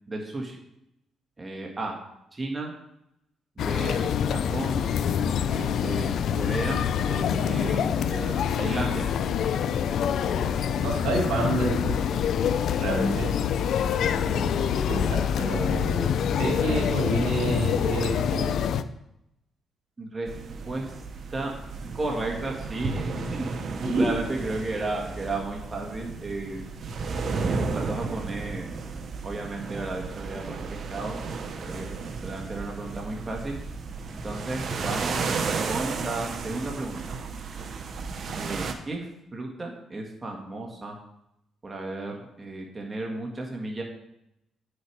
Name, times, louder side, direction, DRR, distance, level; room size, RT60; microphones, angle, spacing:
voice 1, 0.1-0.6 1.4-1.9 2.3-2.7 3.6-4.1 4.5-4.8 5.5-9.1 20.0-20.3 20.7-20.9 21.3-21.5 21.9-23.7 24.0-26.7 27.5-28.7 29.2-31.2 31.6-31.9 32.2-33.6 34.2-35.2 35.7-37.0 38.3-41.0 41.6-43.8, right 2 dB, 25° right, 0 dB, 1.8 m, -33 dB
sound 1, 3.6-18.8, left 8 dB, 70° left, 0.5 m, -26 dB
voice 2, 10.2-10.5 10.8-12.1 12.8-13.3 14.0-16.1 16.4-18.5 23.1-23.2 23.8-24.1, right 2 dB, 85° right, -1 dB, 3.6 m, -28 dB
sound 2, 20.3-38.7, right 4 dB, 55° right, 1.1 m, -33 dB
9.8 x 6.7 x 4.7 m, 0.83 s
cardioid pair, 90°, 0 cm